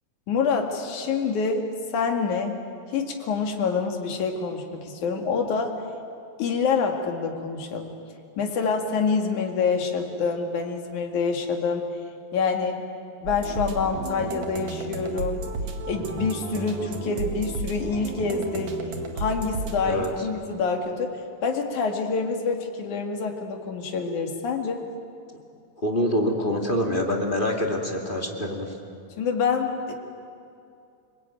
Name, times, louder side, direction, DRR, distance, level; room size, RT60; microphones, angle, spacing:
voice 1, 0.3-2.6 2.9-5.8 6.4-7.9 8.4-11.9 12.3-12.8 13.2-15.5 15.9-18.8 19.2-24.8 29.2-29.9, left 5 dB, 65° left, 3 dB, 3.6 m, -26 dB
sound 1, 13.3-20.1, right 2 dB, 55° right, 2.9 m, -33 dB
voice 2, 25.8-28.7, left 1 dB, 15° left, 1 dB, 2.2 m, -25 dB
29.5 x 21.0 x 9.2 m, 2.5 s
omnidirectional pair, 3.8 m